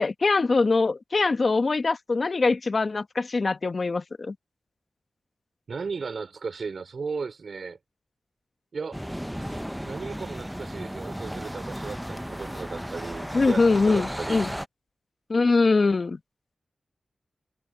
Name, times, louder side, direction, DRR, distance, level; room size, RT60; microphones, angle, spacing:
voice 1, 0.0-4.3 13.3-14.5 15.3-16.2, left 3 dB, 50° left, 0.9 m, -23 dB
voice 2, 5.7-7.8 8.7-9.0 9.4-14.4, right 5 dB, 70° right, 4.3 m, -36 dB
sound 1, 8.9-14.7, equal, ahead, 0.5 m, -34 dB
wide cardioid pair, 80°, 0 cm